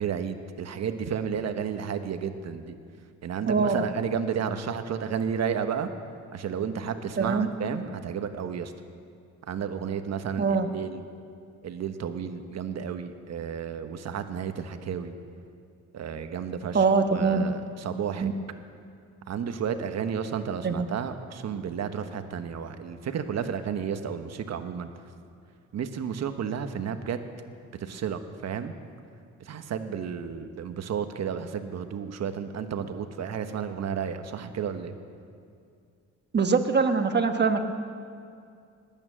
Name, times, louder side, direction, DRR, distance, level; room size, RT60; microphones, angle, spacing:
voice 1, 0.0-2.7 3.2-5.9 6.3-8.7 9.5-11.1 11.6-15.1 15.9-16.8 17.1-18.3 19.3-24.9 25.7-27.2 27.8-28.7 29.4-34.9, right 7 dB, 60° right, 8 dB, 1.2 m, -32 dB
voice 2, 3.5-3.8 7.2-7.5 10.4-10.7 16.7-17.4 18.2-18.3 20.6-20.9 36.3-37.6, right 5 dB, 35° right, 7 dB, 1.2 m, -23 dB
20.0 x 8.9 x 7.5 m, 2.4 s
cardioid pair, 90°, 30 cm